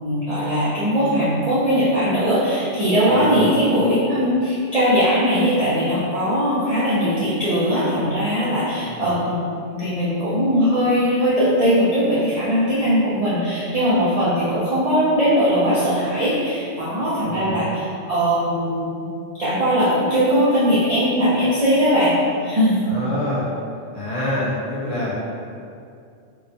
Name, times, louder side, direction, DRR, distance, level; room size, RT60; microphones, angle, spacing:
voice 1, 0.0-9.4 9.6-19.1 19.4-22.2 22.4-22.9, equal, 70° right, -10 dB, 0.3 m, -20 dB
voice 2, 3.1-3.4 8.9-9.1 17.3-17.5 22.9-23.4 23.9-25.1, left 1 dB, 75° left, -8 dB, 1.1 m, -26 dB
2.8 x 2.2 x 2.6 m, 2.4 s
omnidirectional pair, 1.3 m